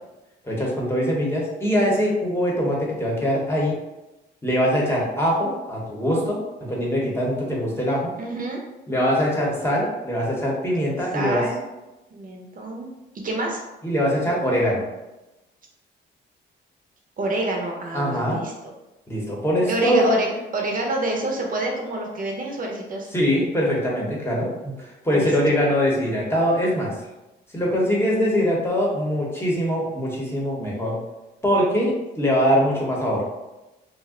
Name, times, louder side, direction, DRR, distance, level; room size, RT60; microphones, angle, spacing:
voice 1, 0.4-3.8 4.4-8.1 8.9-11.5 13.8-14.8 17.9-18.4 19.1-20.1 23.1-26.9 27.5-31.0 31.4-33.2, equal, 10° left, -4 dB, 1.0 m, -22 dB
voice 2, 8.2-8.6 11.1-11.6 12.1-12.9 13.1-13.6 17.2-18.5 19.7-23.1 25.1-25.3, right 1 dB, 45° right, 0 dB, 0.8 m, -27 dB
2.6 x 2.2 x 3.7 m, 1.0 s
cardioid pair, 90°, 20 cm